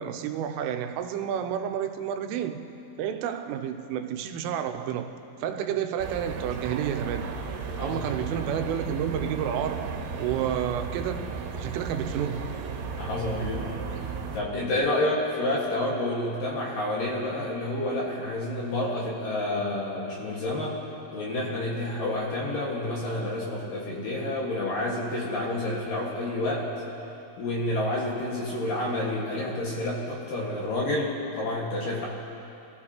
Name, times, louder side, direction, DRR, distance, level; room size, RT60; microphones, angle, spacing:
voice 1, 0.0-2.7 3.0-7.3 7.8-11.3 11.6-12.5, right 9 dB, 90° right, 3.3 m, -30 dB
sound 1, 6.0-14.4, right 5 dB, 75° right, 3.0 m, -35 dB
voice 2, 7.7-8.3 13.0-13.8 14.3-20.8 21.1-26.7 27.4-32.1, left 1 dB, 55° left, 2.7 m, -29 dB
25.5 x 15.5 x 2.9 m
omnidirectional pair, 5.6 m